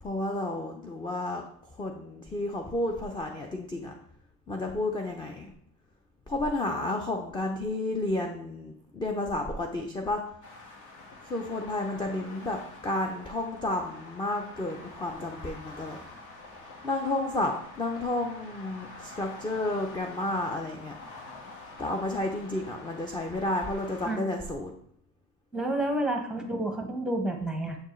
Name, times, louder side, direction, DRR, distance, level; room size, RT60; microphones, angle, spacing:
voice 1, 0.0-1.4 1.8-3.9 4.5-5.5 6.3-10.2 11.2-16.0 16.8-20.9 21.8-24.7, left 2 dB, 15° left, 2 dB, 0.4 m, -31 dB
sound 1, 10.4-24.1, left 3 dB, 55° left, 1.4 m, -47 dB
voice 2, 25.5-27.8, right 1 dB, ahead, 3 dB, 0.8 m, -30 dB
6.9 x 4.4 x 3.1 m, 0.68 s
cardioid pair, 125°, 35 cm